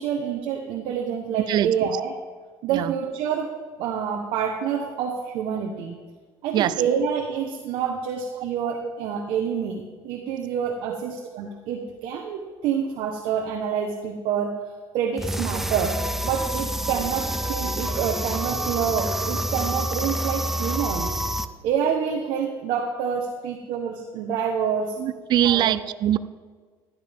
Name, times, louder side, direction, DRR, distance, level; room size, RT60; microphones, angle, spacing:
voice 1, 0.0-2.2 2.6-3.5 3.8-6.0 6.4-14.6 14.9-16.0 16.2-21.2 21.6-25.0 25.4-25.7, right 7 dB, 75° right, 2 dB, 1.2 m, -27 dB
sound 1, 15.2-21.5, right 1 dB, 5° right, 0.6 m, -28 dB
voice 2, 25.0-26.2, right 12 dB, 55° right, 15 dB, 0.5 m, -22 dB
15.5 x 12.5 x 3.6 m, 1.5 s
cardioid pair, 120°, 9 cm